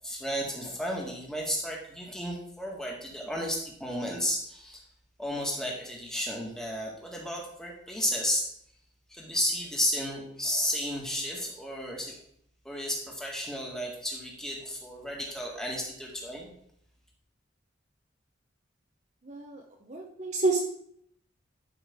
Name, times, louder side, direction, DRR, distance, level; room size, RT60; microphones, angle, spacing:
voice 1, 0.0-4.8 5.2-8.5 9.1-12.2 12.7-16.5, equal, 5° left, -2 dB, 1.8 m, -33 dB
voice 2, 19.2-19.6 19.9-20.6, right 3 dB, 40° right, 0 dB, 0.9 m, -28 dB
12.0 x 5.3 x 3.6 m, 0.69 s
head